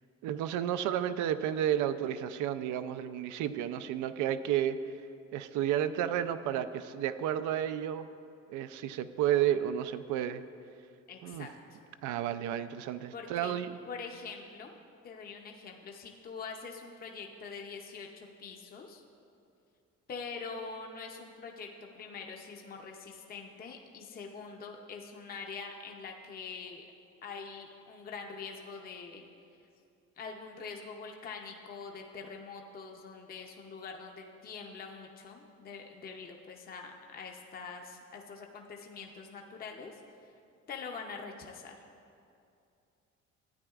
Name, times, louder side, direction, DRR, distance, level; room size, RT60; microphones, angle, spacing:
voice 1, 0.2-4.8 5.3-8.1 8.5-10.4 11.2-11.5 12.0-13.8, right 10 dB, 80° right, 11 dB, 0.5 m, -31 dB
voice 2, 11.1-11.5 13.1-13.6 13.9-14.7 15.0-19.0 20.1-26.9 27.2-29.3 30.2-40.0 40.7-41.8, left 5 dB, 30° left, 2 dB, 0.6 m, -44 dB
13.0 x 8.8 x 2.4 m, 2.5 s
cardioid pair, 120°, 29 cm